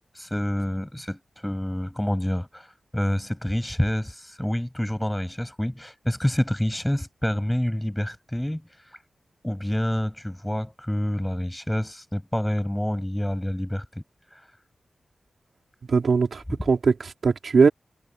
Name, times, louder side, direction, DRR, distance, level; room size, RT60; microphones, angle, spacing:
voice 1, 0.2-2.7 2.9-8.6 9.4-14.0, left 1 dB, 5° left, 7.7 m, -27 dB
voice 2, 15.9-17.7, right 5 dB, 60° right, 4.0 m, -20 dB
wide cardioid pair, 145°, 0 cm